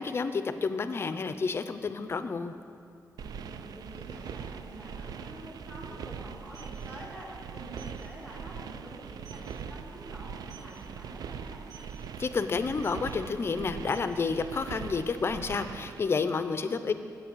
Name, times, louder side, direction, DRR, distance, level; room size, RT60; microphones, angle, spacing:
voice 1, 0.0-2.5 12.2-16.9, left 4 dB, 40° left, 11 dB, 0.5 m, -30 dB
voice 2, 3.2-11.6 16.6-16.9, right 1 dB, 25° right, -9 dB, 2.0 m, -47 dB
sound 1, 3.2-16.0, right 7 dB, 85° right, 0.4 m, -41 dB
sound 2, 6.3-6.8 7.7-8.0 8.4-8.6 8.9-9.0 9.2-9.5 10.4-10.7 11.6-11.9 12.8-13.1 13.7-15.0, right 6 dB, 65° right, 2.8 m, -52 dB
8.5 x 7.9 x 7.2 m, 2.5 s
wide cardioid pair, 140°, 6 cm